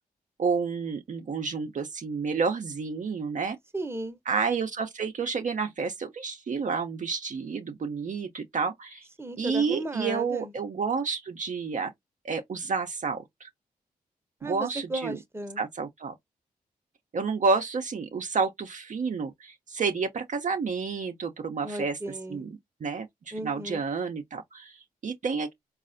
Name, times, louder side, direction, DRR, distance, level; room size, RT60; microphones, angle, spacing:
voice 1, 0.4-3.6 4.3-9.1 9.4-11.9 12.2-13.5 14.4-15.2 15.6-16.1 17.1-22.0 22.3-25.5, right 5 dB, 55° right, 0.6 m, -30 dB
voice 2, 3.7-4.2 9.2-10.5 14.4-15.6 21.6-22.4 23.3-23.8, right 2 dB, 15° right, 0.8 m, -35 dB
4.0 x 2.4 x 2.5 m
supercardioid pair, 45°, 16 cm